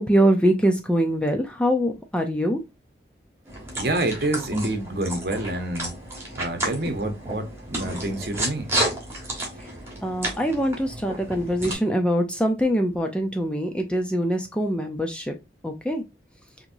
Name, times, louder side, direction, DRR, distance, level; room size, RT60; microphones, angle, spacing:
voice 1, 0.0-2.6 10.0-15.4 15.6-16.0, equal, 5° left, 0.5 m, -23 dB
sound 1, 3.5-11.7, right 1 dB, 15° right, 1.4 m, -32 dB
voice 2, 3.8-5.9 6.3-8.7, right 1 dB, 55° right, 0.9 m, -27 dB
4.3 x 2.9 x 2.6 m
head